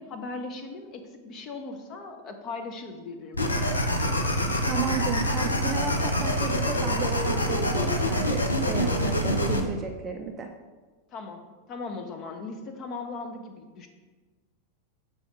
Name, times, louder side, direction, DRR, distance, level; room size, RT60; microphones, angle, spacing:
voice 1, 0.0-3.8 11.1-13.9, left 3 dB, 35° left, 4 dB, 0.7 m, -38 dB
sound 1, 3.3-9.6, equal, 80° left, 0.7 m, -26 dB
voice 2, 4.7-10.5, right 6 dB, 25° right, 4 dB, 0.5 m, -33 dB
6.3 x 4.2 x 5.0 m, 1.3 s
figure-of-eight pair, 90°, 0 cm